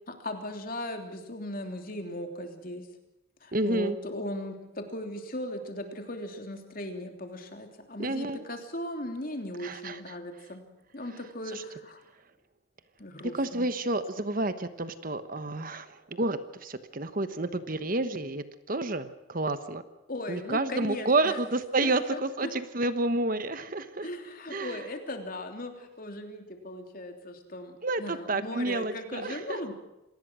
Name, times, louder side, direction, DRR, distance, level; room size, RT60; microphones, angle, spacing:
voice 1, 0.1-2.9 3.4-10.6 10.9-12.0 13.0-13.7 20.1-21.4 21.8-22.5 24.0-29.7, left 1 dB, 45° left, 4 dB, 3.2 m, -38 dB
voice 2, 3.5-4.0 8.0-8.4 9.6-10.0 11.5-11.6 13.3-19.8 20.3-24.1 24.5-24.8 27.8-29.7, right 2 dB, 45° right, 11 dB, 1.2 m, -30 dB
27.0 x 19.0 x 6.3 m, 0.92 s
head